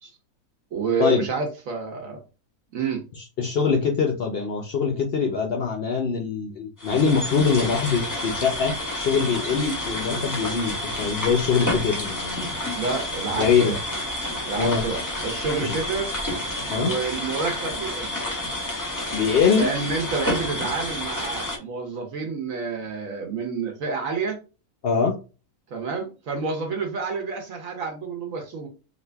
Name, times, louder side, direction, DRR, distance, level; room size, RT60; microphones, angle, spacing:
voice 1, 0.7-2.2 2.7-3.0 12.7-13.7 14.5-16.1 16.7-18.1 19.6-24.4 25.7-28.7, right 4 dB, 65° right, 1.1 m, -29 dB
voice 2, 3.2-12.5 13.4-13.8 14.6-14.8 15.6-15.8 16.7-16.9 19.1-19.7 24.8-25.2, left 6 dB, 70° left, 0.5 m, -23 dB
sound 1, 6.8-21.6, left 1 dB, 15° left, 0.8 m, -30 dB
2.9 x 2.5 x 3.3 m
omnidirectional pair, 1.6 m